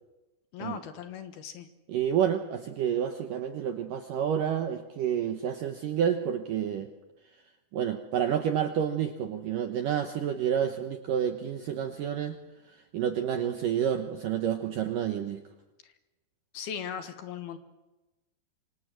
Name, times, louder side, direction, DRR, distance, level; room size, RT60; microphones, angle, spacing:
voice 1, 0.5-1.7 15.8-15.9 16.5-17.6, left 8 dB, 65° left, 9 dB, 2.9 m, -38 dB
voice 2, 1.9-6.9 7.7-12.4 12.9-15.4, right 9 dB, 70° right, 7 dB, 2.0 m, -29 dB
26.5 x 26.0 x 7.6 m, 1.1 s
omnidirectional pair, 5.4 m